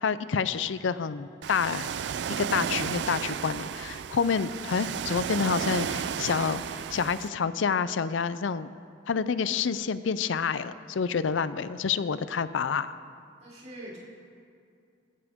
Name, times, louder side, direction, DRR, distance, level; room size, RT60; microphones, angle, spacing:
voice 1, 0.0-1.9 2.4-8.7 9.1-13.0, left 6 dB, 85° left, 14 dB, 0.5 m, -28 dB
Ocean, 1.4-7.3, right 7 dB, 65° right, 0.3 m, -33 dB
voice 2, 13.4-14.0, right 1 dB, 40° right, -6 dB, 4.4 m, -44 dB
18.5 x 15.5 x 3.6 m, 2.4 s
head